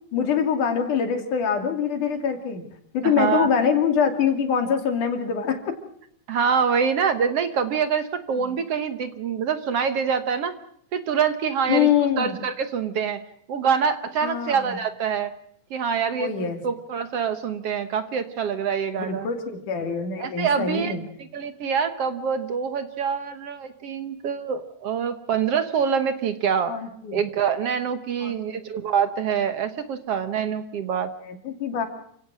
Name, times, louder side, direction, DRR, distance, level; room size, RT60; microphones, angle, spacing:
voice 1, 0.1-2.6 2.9-5.8 8.4-8.5 11.7-12.4 14.2-14.8 16.2-16.6 19.0-21.0 26.7-27.2 28.2-28.4 31.2-31.9, left 7 dB, 75° left, 6 dB, 4.2 m, -24 dB
voice 2, 3.0-3.5 6.3-10.5 10.9-11.9 12.2-13.2 13.5-15.3 15.7-19.3 20.2-20.9 21.3-26.8 27.1-31.1, right 7 dB, 60° right, 10 dB, 1.9 m, -25 dB
28.5 x 17.0 x 6.2 m, 0.67 s
omnidirectional pair, 3.5 m